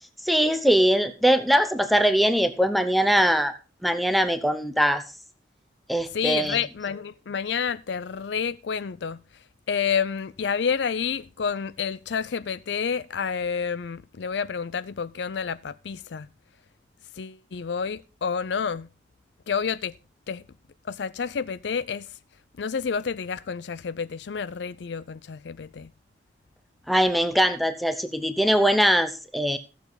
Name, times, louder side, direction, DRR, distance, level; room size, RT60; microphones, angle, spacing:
voice 1, 0.2-3.5 3.8-5.0 5.9-6.6 26.9-29.6, equal, ahead, 0.8 m, -21 dB
voice 2, 6.1-9.2 9.7-16.3 17.2-18.9 19.5-19.9 20.3-20.4 20.9-22.1 22.6-25.9, left 6 dB, 75° left, 0.5 m, -29 dB
15.5 x 6.9 x 4.0 m
head